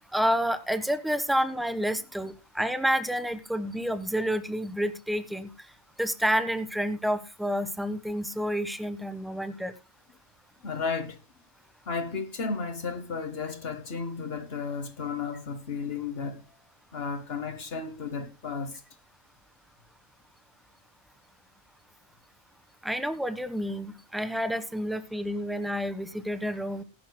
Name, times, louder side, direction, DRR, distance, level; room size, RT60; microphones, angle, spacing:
voice 1, 0.1-5.5 6.0-9.7 22.8-26.8, equal, ahead, 1.1 m, -29 dB
voice 2, 10.6-11.2 11.8-16.5 16.9-18.8, left 5 dB, 60° left, 1.3 m, -33 dB
20.0 x 11.5 x 2.2 m
omnidirectional pair, 1.2 m